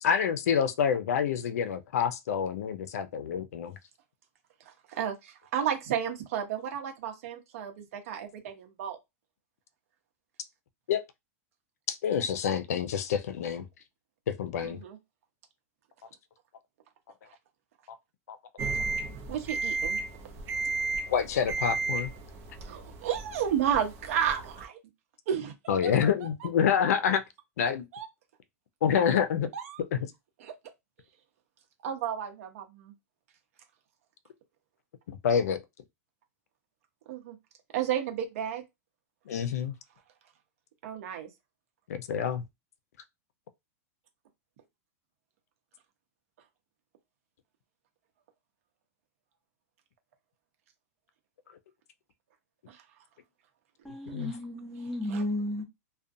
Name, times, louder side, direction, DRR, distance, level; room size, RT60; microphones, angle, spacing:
voice 1, 0.0-3.8 10.9-11.0 11.9-13.7 14.3-14.8 17.9-18.0 18.3-18.4 21.1-22.1 25.7-27.2 27.6-27.9 28.8-29.5 29.9-30.0 35.1-35.6 39.3-39.7 41.9-42.4 54.1-54.3, left 7 dB, 80° left, 0.4 m, -27 dB
voice 2, 4.9-9.0 14.6-15.0 19.3-20.0 22.6-24.8 25.3-25.5 27.9-28.1 28.9-29.0 29.5-29.8 30.4-30.5 31.8-32.9 37.1-37.4 37.7-38.6 40.8-41.3 52.7-52.8 55.1-55.3, right 9 dB, 65° right, 0.8 m, -32 dB
sound 1, 18.6-24.6, right 3 dB, 30° right, 0.6 m, -34 dB
voice 3, 53.9-55.6, left 1 dB, ahead, 0.9 m, -33 dB
2.4 x 2.1 x 2.6 m
supercardioid pair, 145°, 8 cm